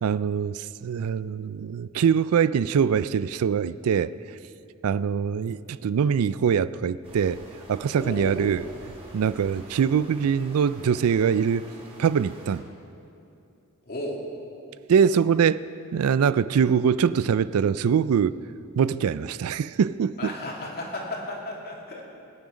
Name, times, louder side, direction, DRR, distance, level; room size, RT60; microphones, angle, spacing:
voice 1, 0.0-4.1 4.8-7.4 7.7-8.6 9.1-11.7 12.0-12.6 14.9-15.6 15.9-18.4 18.8-20.3, right 7 dB, 75° right, 16 dB, 0.4 m, -23 dB
sound 1, 7.0-12.6, right 1 dB, 30° right, 4.2 m, -47 dB
voice 2, 8.0-8.7 13.9-14.2 20.2-22.1, left 1 dB, 45° left, -2 dB, 2.6 m, -34 dB
23.0 x 9.4 x 5.0 m, 2.7 s
head